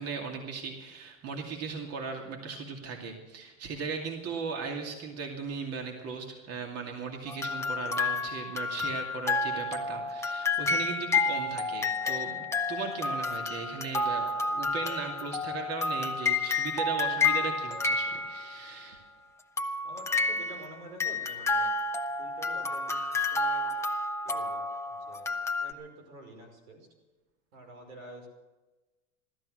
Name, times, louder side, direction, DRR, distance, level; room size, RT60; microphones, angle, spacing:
voice 1, 0.0-19.0, right 5 dB, 40° right, 2 dB, 2.5 m, -38 dB
sound 1, 7.3-18.8 19.6-25.7, left 3 dB, 5° left, 0.9 m, -30 dB
voice 2, 19.8-21.7 22.2-23.8 24.2-25.3 25.6-26.9 27.5-28.3, right 2 dB, 85° right, 4 dB, 5.3 m, -48 dB
16.5 x 13.0 x 6.5 m, 1.1 s
supercardioid pair, 120°, 39 cm